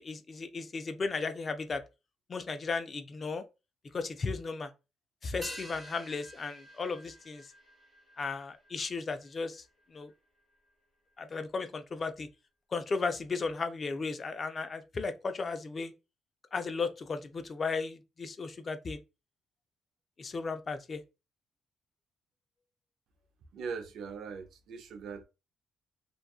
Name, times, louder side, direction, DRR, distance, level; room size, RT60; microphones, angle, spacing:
voice 1, 0.0-1.9 2.3-3.4 3.9-4.7 5.2-7.5 8.2-9.6 9.9-10.1 11.2-12.3 12.7-15.9 16.5-19.0 20.2-21.0, left 4 dB, 40° left, 0.4 m, -35 dB
sound 1, 5.4-10.1 10.4-10.5, equal, 15° right, 1.2 m, -49 dB
voice 2, 23.5-25.2, right 5 dB, 75° right, 0.5 m, -40 dB
2.6 x 2.3 x 2.3 m
cardioid pair, 90°, 0 cm